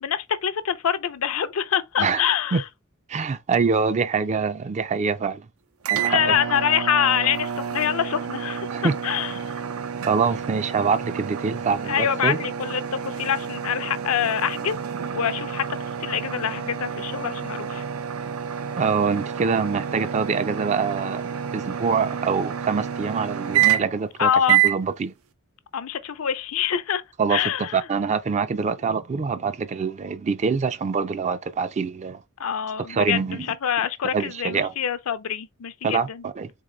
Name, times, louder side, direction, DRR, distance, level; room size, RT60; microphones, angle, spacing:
voice 1, 0.0-2.6 6.0-9.6 11.9-14.8 15.1-15.6 16.0-17.8 24.2-24.6 25.7-27.0 27.3-27.7 32.4-33.2 33.6-36.2, left 8 dB, 80° left, 0.5 m, -25 dB
voice 2, 3.1-5.5 5.9-6.3 8.7-9.0 10.1-12.4 18.8-25.1 27.2-32.2 32.9-33.6 34.1-34.7 35.8-36.5, right 5 dB, 35° right, 0.3 m, -25 dB
sound 1, 5.8-24.1 24.5-24.8, right 9 dB, 90° right, 0.5 m, -28 dB
3.7 x 3.7 x 3.1 m
head